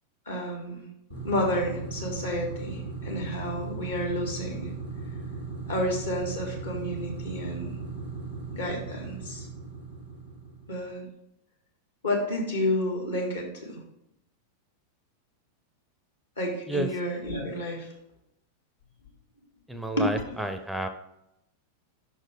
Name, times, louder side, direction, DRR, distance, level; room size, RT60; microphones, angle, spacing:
voice 1, 0.3-0.8 1.2-4.7 5.7-7.7 8.5-9.5 10.7-11.0 12.0-13.8 16.4-17.9 20.0-20.1, left 1 dB, 70° left, 0 dB, 1.9 m, -30 dB
sound 1, 1.1-10.9, right 4 dB, 90° left, 2.0 m, -37 dB
voice 2, 19.7-20.9, right 1 dB, 5° right, 8 dB, 0.5 m, -30 dB
6.1 x 4.2 x 4.9 m, 0.82 s
figure-of-eight pair, 90°, 0 cm